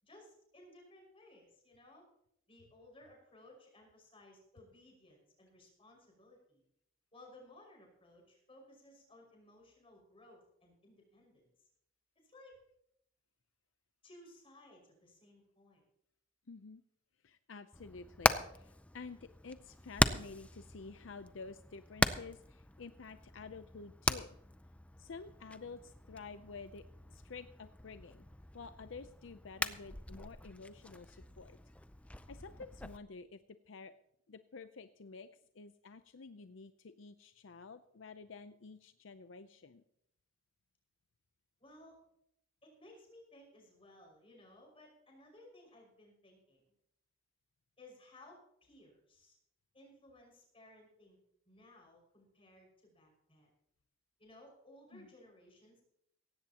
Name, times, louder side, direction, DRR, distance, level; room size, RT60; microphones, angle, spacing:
voice 1, 0.0-2.0 2.5-6.6 7.1-11.7 12.2-12.5 14.0-15.8 41.6-42.0 42.6-46.6 47.8-49.4 49.7-51.2 51.5-53.5 54.2-55.8, left 1 dB, 30° left, 0 dB, 5.6 m, -59 dB
voice 2, 16.5-16.8 17.2-24.4 25.0-28.2 28.5-31.6 32.1-33.9 34.3-35.3 35.5-39.8 54.9-55.1, left 4 dB, 75° left, 11 dB, 0.6 m, -50 dB
Hammer, 17.7-33.0, left 1 dB, 5° left, 0.5 m, -39 dB
17.5 x 15.5 x 2.9 m, 0.76 s
head